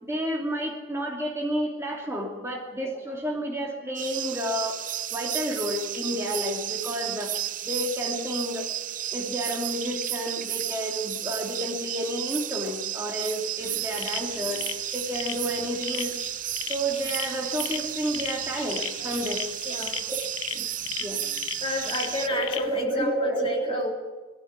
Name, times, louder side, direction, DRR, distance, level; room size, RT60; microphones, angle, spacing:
voice 1, 0.0-4.8 5.1-7.3 7.6-8.7 9.1-16.1 16.7-19.4 20.5-20.7 21.0-21.2 22.2-23.9, equal, 10° right, -1 dB, 2.7 m, -30 dB
sound 1, 4.0-22.3, right 12 dB, 40° right, 0.6 m, -33 dB
sound 2, 13.6-22.8, left 10 dB, 80° left, 1.1 m, -37 dB
voice 2, 19.6-20.1 21.6-23.9, left 2 dB, 25° left, 0 dB, 3.6 m, -32 dB
22.0 x 14.0 x 9.7 m, 1.3 s
head